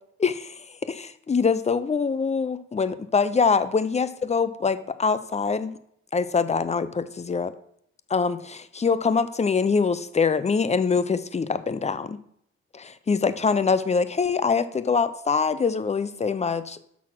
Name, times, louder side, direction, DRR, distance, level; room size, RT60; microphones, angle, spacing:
voice 1, 0.2-5.8 6.1-7.5 8.1-12.2 12.7-16.8, left 5 dB, 20° left, 14 dB, 0.6 m, -24 dB
6.2 x 6.1 x 6.0 m, 0.70 s
cardioid pair, 90°, 30 cm